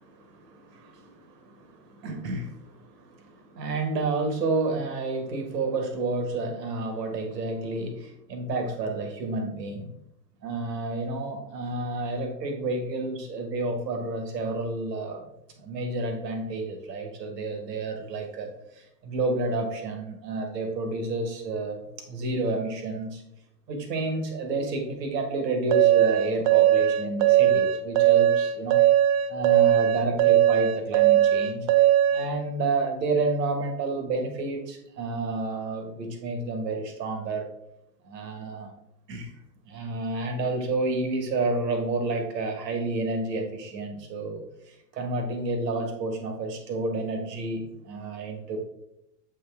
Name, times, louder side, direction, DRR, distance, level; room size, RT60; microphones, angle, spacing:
voice 1, 0.0-9.9 10.4-15.2 15.6-18.5 18.8-21.8 22.1-23.2 23.7-28.8 29.3-31.7 32.1-37.5 38.1-38.7 39.1-39.3 39.7-44.4 44.9-48.6, right 2 dB, 75° right, 4 dB, 1.7 m, -30 dB
sound 1, 25.7-32.3, right 12 dB, 55° right, 0.8 m, -19 dB
7.4 x 3.8 x 3.5 m, 0.80 s
hypercardioid pair, 110°, 49 cm